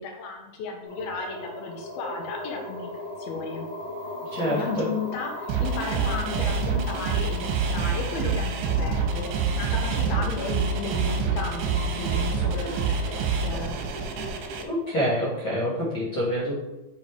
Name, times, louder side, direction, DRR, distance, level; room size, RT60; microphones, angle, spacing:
voice 1, 0.0-2.9 3.2-3.7 4.5-9.2 9.5-13.7, left 4 dB, 75° left, 2 dB, 2.4 m, -34 dB
sound 1, 0.8-15.4, left 1 dB, 35° left, 2.5 m, -39 dB
voice 2, 4.3-4.9 14.7-16.5, equal, 50° left, -11 dB, 1.4 m, -26 dB
sound 2, 5.5-14.6, right 5 dB, 85° right, 2.9 m, -27 dB
6.4 x 5.5 x 3.2 m, 0.97 s
omnidirectional pair, 5.1 m